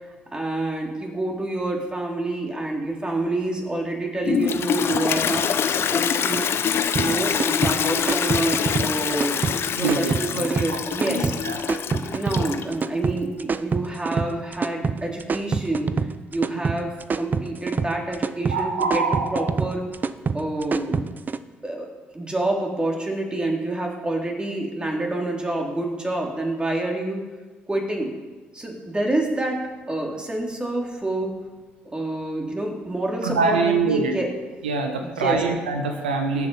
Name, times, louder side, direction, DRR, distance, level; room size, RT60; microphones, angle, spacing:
voice 1, 0.3-6.5 6.9-9.4 9.8-11.3 11.9-19.0 19.3-19.8 20.3-21.2 21.6-21.9 22.1-27.2 27.7-28.1 28.5-31.3 31.8-34.3 35.0-35.4, right 2 dB, 20° right, 0 dB, 3.4 m, -27 dB
Toilet flush, 4.2-12.8, left 8 dB, 50° left, 0.8 m, -25 dB
sound 1, 7.0-21.4, right 5 dB, 35° right, 0.6 m, -26 dB
voice 2, 9.8-10.4 11.0-11.6 18.5-19.5 33.2-34.2 34.6-36.5, right 4 dB, 90° right, 4 dB, 1.1 m, -24 dB
17.5 x 7.3 x 5.6 m, 1.3 s
hypercardioid pair, 50°, 5 cm